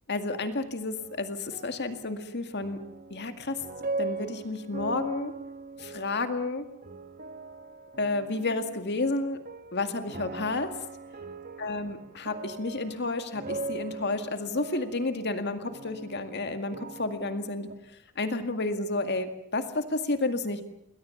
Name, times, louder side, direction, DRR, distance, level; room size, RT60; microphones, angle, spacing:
voice 1, 0.1-2.8 3.1-3.6 4.0-5.3 5.8-6.7 8.0-9.4 9.7-10.7 11.6-17.7 18.2-20.6, left 2 dB, 50° left, 8 dB, 2.0 m, -31 dB
sound 1, 1.0-17.7, right 3 dB, 40° right, 1.5 m, -41 dB
28.0 x 21.5 x 7.1 m, 0.75 s
head